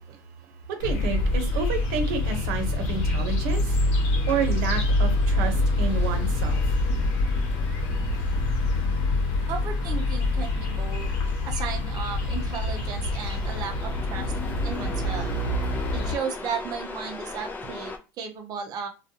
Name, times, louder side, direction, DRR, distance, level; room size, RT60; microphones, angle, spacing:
voice 1, 0.0-6.8, right 5 dB, 75° right, 5 dB, 0.8 m, -31 dB
sound 1, 0.8-16.2, left 2 dB, 60° left, 1.0 m, -25 dB
sound 2, 4.2-18.0, left 3 dB, 20° left, 0.5 m, -42 dB
voice 2, 9.5-11.1 11.4-14.3 14.6-15.3 15.9-18.9, right 6 dB, 40° right, 2 dB, 0.6 m, -34 dB
2.3 x 2.3 x 2.8 m, 0.30 s
supercardioid pair, 115°, 10 cm